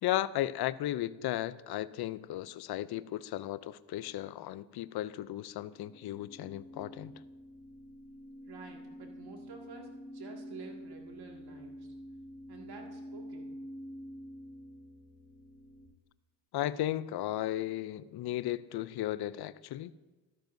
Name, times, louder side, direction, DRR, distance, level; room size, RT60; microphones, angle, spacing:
voice 1, 0.0-7.1 16.5-19.9, left 13 dB, 55° left, 18 dB, 0.5 m, -35 dB
sound 1, 5.7-15.9, equal, 20° left, 2.3 m, -48 dB
voice 2, 8.5-11.9 12.5-13.5, right 4 dB, 55° right, 1 dB, 2.1 m, -50 dB
13.0 x 12.0 x 2.6 m, 1.2 s
cardioid pair, 75°, 46 cm